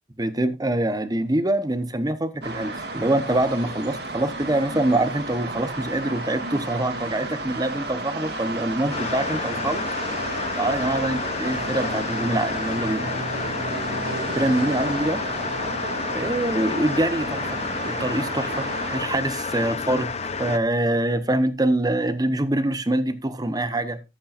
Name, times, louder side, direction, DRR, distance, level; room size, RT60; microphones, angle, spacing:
voice 1, 0.2-9.9 10.6-13.1 14.3-15.2 16.1-17.6 17.8-24.0, right 1 dB, 20° right, 1.0 m, -25 dB
sound 1, 2.4-19.0, right 2 dB, 65° right, 2.5 m, -32 dB
sound 2, 8.9-20.6, left 5 dB, 35° left, 0.8 m, -30 dB
13.0 x 8.6 x 2.5 m
head